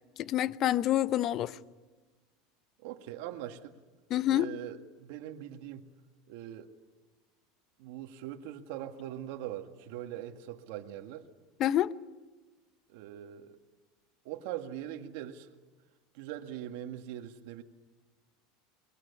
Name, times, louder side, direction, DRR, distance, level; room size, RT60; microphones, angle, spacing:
voice 1, 0.2-1.6 4.1-4.5 11.6-11.9, left 12 dB, 40° left, 0.8 m, -27 dB
voice 2, 2.8-3.8 4.3-5.9 6.3-6.7 7.8-11.3 12.9-13.6 14.2-15.5 16.1-17.6, right 11 dB, 70° right, 1.9 m, -41 dB
22.5 x 20.5 x 9.7 m
supercardioid pair, 130°, 0 cm